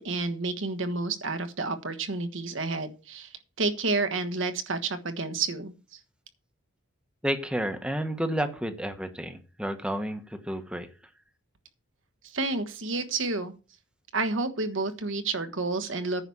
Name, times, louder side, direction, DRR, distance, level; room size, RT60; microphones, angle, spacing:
voice 1, 0.0-6.0 12.2-13.5 14.1-16.2, right 3 dB, 65° right, 8 dB, 1.3 m, -30 dB
voice 2, 7.2-10.9, right 1 dB, 5° right, 8 dB, 1.2 m, -31 dB
10.0 x 6.0 x 7.1 m, 0.34 s
head